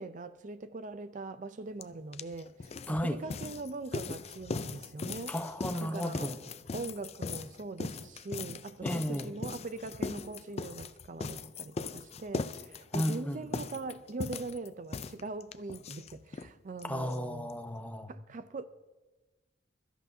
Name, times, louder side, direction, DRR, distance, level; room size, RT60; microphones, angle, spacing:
voice 1, 0.0-5.3 5.8-6.3 6.7-17.5 18.1-18.6, right 3 dB, 45° right, 0.5 m, -42 dB
sound 1, 1.8-1.9 2.1-16.5 16.8-16.9 17.1-17.2 17.5-17.6, left 4 dB, 35° left, 0.5 m, -39 dB
voice 2, 2.9-3.2 5.3-6.4 8.8-9.3 12.9-13.6 16.8-18.1, equal, 10° left, 0.9 m, -34 dB
22.5 x 13.5 x 2.7 m
head